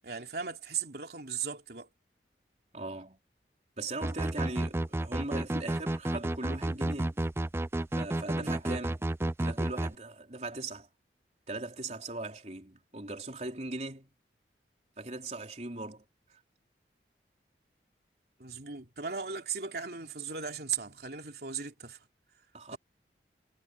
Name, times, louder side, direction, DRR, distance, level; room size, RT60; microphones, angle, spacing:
voice 1, 0.0-1.9 8.3-8.6 18.4-22.1 22.7-22.8, right 6 dB, 65° right, 3.2 m, -37 dB
voice 2, 2.7-3.2 3.8-7.2 8.0-9.1 9.4-10.9 11.5-14.1 15.0-16.0 16.3-16.4 22.5-22.8, right 2 dB, 40° right, 3.9 m, -39 dB
sound 1, 4.0-9.9, right 1 dB, 15° right, 0.4 m, -31 dB
head